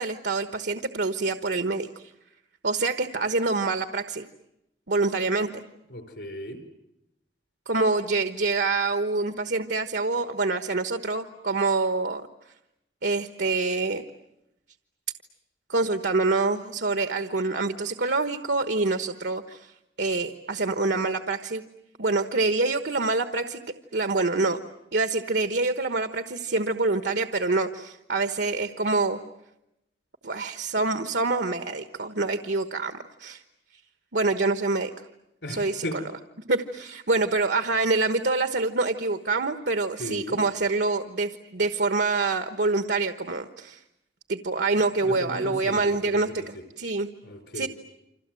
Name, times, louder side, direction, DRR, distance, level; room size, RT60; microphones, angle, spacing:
voice 1, 0.0-1.9 2.6-4.2 4.9-5.6 7.7-12.2 13.0-14.0 15.7-19.7 20.0-21.6 22.0-23.6 23.9-24.6 24.9-29.2 30.2-33.4 34.1-34.9 35.5-35.8 36.5-43.8 44.3-47.1 47.5-47.7, right 3 dB, 70° right, 9 dB, 1.2 m, -26 dB
voice 2, 5.9-6.6 35.4-36.0 40.0-40.4 45.0-46.6 47.2-47.7, left 1 dB, 70° left, 8 dB, 4.9 m, -36 dB
29.0 x 26.5 x 7.7 m, 0.87 s
head